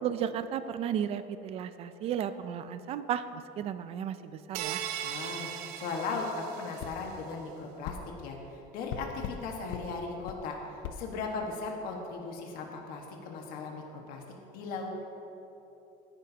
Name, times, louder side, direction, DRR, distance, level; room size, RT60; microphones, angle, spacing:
voice 1, 0.0-4.8, right 9 dB, 35° right, 12 dB, 0.4 m, -34 dB
sound 1, 4.5-7.0, right 10 dB, 90° right, 0.8 m, -38 dB
voice 2, 5.0-8.0 8.2-14.2 14.5-15.1, left 4 dB, 55° left, 1 dB, 1.6 m, -37 dB
sound 2, 6.8-7.0 7.8-8.0 8.9-9.4 9.7-9.9 10.3-10.4 10.8-11.0, left 9 dB, 80° left, 0.7 m, -38 dB
17.0 x 10.5 x 2.9 m, 3.0 s
cardioid pair, 165°, 18 cm